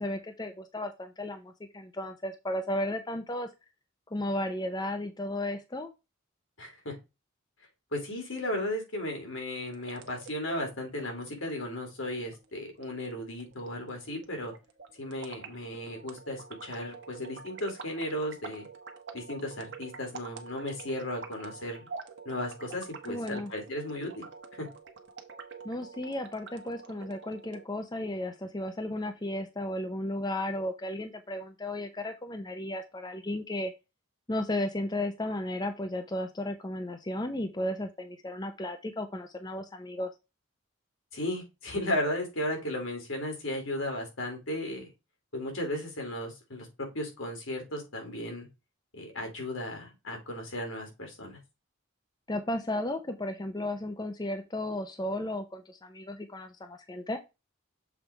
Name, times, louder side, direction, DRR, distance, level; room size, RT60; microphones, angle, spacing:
voice 1, 0.0-3.5 4.1-5.9 23.1-23.5 25.6-33.7 34.3-40.1 52.3-57.2, left 1 dB, 20° left, 7 dB, 0.6 m, -34 dB
voice 2, 6.6-7.0 7.9-14.5 15.0-18.7 19.1-21.9 22.2-24.3 24.6-24.7 41.1-44.9 45.3-48.5 48.9-51.4, left 1 dB, 75° left, 2 dB, 2.9 m, -35 dB
sound 1, 9.6-27.6, right 5 dB, 60° right, 1.1 m, -47 dB
7.1 x 3.4 x 4.5 m, 0.25 s
head